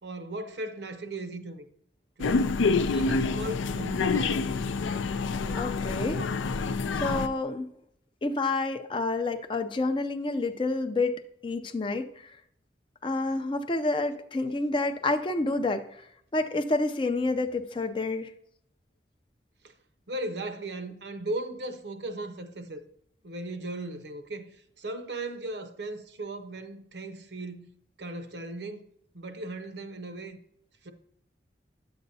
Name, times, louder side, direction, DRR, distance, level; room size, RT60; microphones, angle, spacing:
voice 1, 0.0-1.6 2.2-2.6 2.9-4.4 5.4-5.8 6.8-7.3 19.6-19.7 20.1-22.8 23.2-27.7 28.0-28.8 29.1-30.4 30.8-30.9, right 2 dB, 65° right, 0.7 m, -37 dB
sound 1, 2.2-7.3, left 4 dB, 90° left, 0.4 m, -27 dB
voice 2, 5.6-6.2 6.9-7.6 8.2-11.2 11.4-12.1 13.0-15.8 16.3-18.3, left 2 dB, 25° left, 0.4 m, -28 dB
10.0 x 7.8 x 2.7 m
head